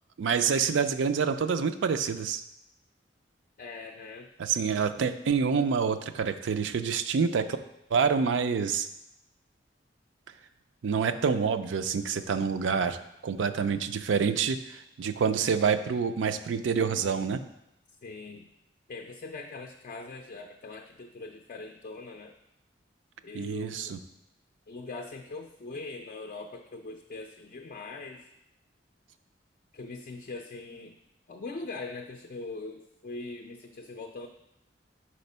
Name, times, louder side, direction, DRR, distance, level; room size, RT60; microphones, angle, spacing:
voice 1, 0.2-2.4 4.4-7.6 7.9-8.9 10.8-13.0 13.2-17.4 23.3-24.0, right 6 dB, 90° right, 10 dB, 0.4 m, -27 dB
voice 2, 3.6-4.3 18.0-18.5 18.9-22.3 23.2-24.0 24.7-28.3 29.7-31.0 31.3-34.3, left 3 dB, 45° left, 3 dB, 0.4 m, -41 dB
5.0 x 4.3 x 5.4 m, 0.85 s
head